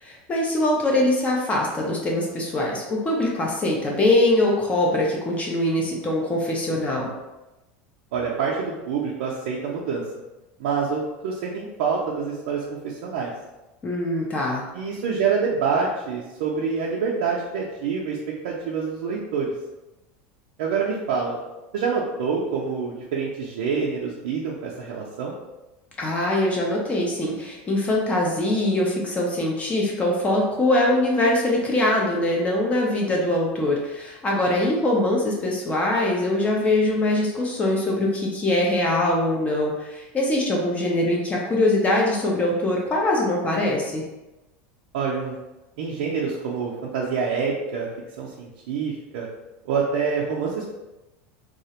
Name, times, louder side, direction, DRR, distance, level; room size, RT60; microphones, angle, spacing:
voice 1, 0.0-7.1 13.8-14.6 26.0-44.0, left 1 dB, 20° left, -2 dB, 0.4 m, -22 dB
voice 2, 8.1-10.0 10.6-13.3 14.7-18.2 18.4-19.5 20.6-21.4 21.7-25.3 44.9-45.4 45.8-47.9 48.2-49.3 49.7-50.6, right 5 dB, 80° right, -4 dB, 0.4 m, -26 dB
2.3 x 2.0 x 2.8 m, 1.0 s
supercardioid pair, 130°, 6 cm